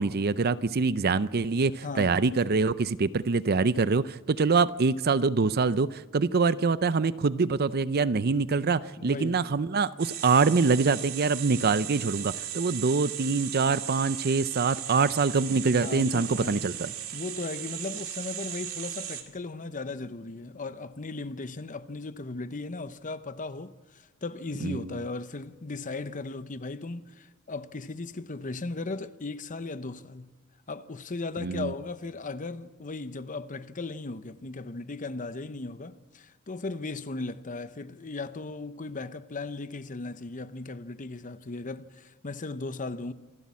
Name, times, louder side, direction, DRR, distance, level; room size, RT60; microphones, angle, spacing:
voice 1, 0.0-16.9 24.6-24.9 31.4-31.7, right 4 dB, 45° right, 0.5 m, -25 dB
voice 2, 1.8-2.2 9.0-9.4 15.8-16.7 17.1-30.3 30.7-43.1, left 3 dB, 35° left, 0.8 m, -37 dB
sound 1, 10.0-19.2, right 10 dB, 70° right, 2.7 m, -37 dB
27.5 x 12.0 x 8.4 m
head